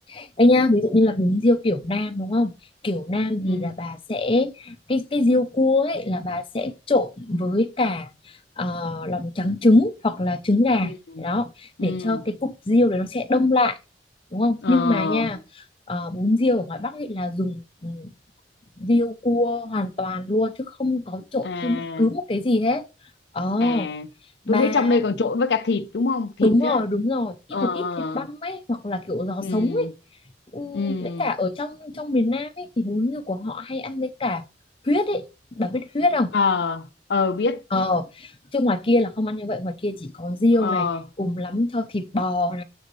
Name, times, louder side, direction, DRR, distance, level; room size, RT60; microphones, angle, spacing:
voice 1, 0.1-2.5 2.8-8.1 8.6-13.8 14.3-18.1 18.8-22.8 23.3-23.9 24.5-25.0 26.4-29.9 30.5-34.4 34.8-35.2 35.6-36.3 37.7-40.9 41.2-42.6, left 2 dB, 30° left, 0.6 m, -23 dB
voice 2, 3.4-3.8 11.2-11.3 11.8-12.2 14.6-15.2 21.4-22.1 23.6-24.1 24.5-26.8 27.5-28.3 29.4-29.9 30.7-31.3 36.3-37.6 40.6-41.0, left 4 dB, 70° left, 0.5 m, -25 dB
7.0 x 6.6 x 3.2 m
head